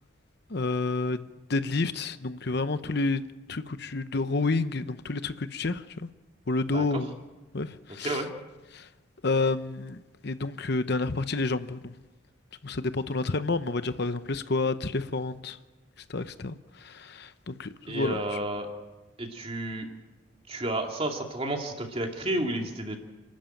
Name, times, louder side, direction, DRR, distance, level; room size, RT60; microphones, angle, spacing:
voice 1, 0.5-3.2 3.5-6.1 6.5-7.2 7.5-8.3 8.7-8.9 9.2-11.9 12.6-15.6 16.1-18.4, left 3 dB, 55° left, 0.8 m, -29 dB
voice 2, 17.9-18.7 19.2-19.9 20.5-23.0, right 1 dB, 30° right, 2.6 m, -31 dB
29.5 x 13.0 x 9.1 m
head